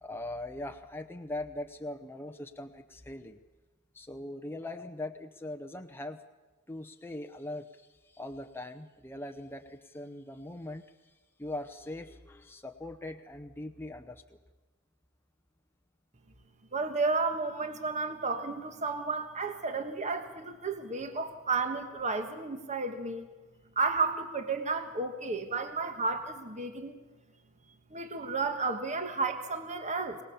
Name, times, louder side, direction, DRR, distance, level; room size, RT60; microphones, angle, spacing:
voice 1, 0.0-3.4 3.9-6.2 6.7-10.8 11.4-14.4, left 1 dB, 10° left, 6 dB, 0.8 m, -41 dB
voice 2, 16.7-23.3 23.7-27.0 27.9-30.2, right 4 dB, 35° right, 7 dB, 1.4 m, -32 dB
24.0 x 19.5 x 7.0 m, 1.2 s
head